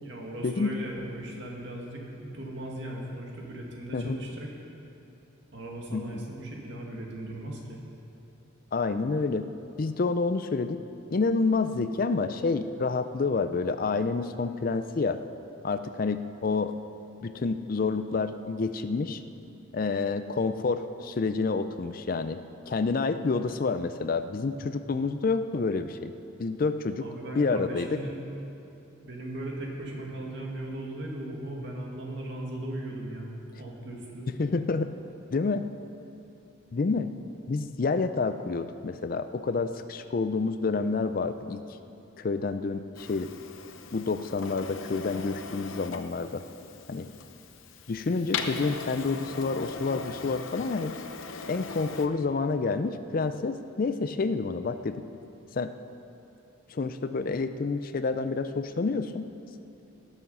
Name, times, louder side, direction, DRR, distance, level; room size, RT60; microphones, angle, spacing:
voice 1, 0.0-4.5 5.5-7.8 27.0-28.2 29.0-33.3 33.6-34.3, right 1 dB, 60° right, -2 dB, 2.1 m, -38 dB
voice 2, 5.9-6.3 8.7-9.5 9.8-10.8 11.1-15.2 15.6-16.7 17.2-19.2 19.7-22.4 22.7-26.1 26.4-27.1 27.3-28.0 34.4-34.9 35.3-35.6 36.7-37.1 37.5-41.6 42.2-43.3 43.9-46.4 46.9-47.1 47.9-51.0 51.5-55.0 55.5-55.7 56.7-59.2, left 4 dB, 45° left, 11 dB, 0.4 m, -28 dB
Printer, 42.9-52.1, left 5 dB, 70° left, 0.7 m, -39 dB
18.0 x 7.1 x 5.5 m, 2.9 s
head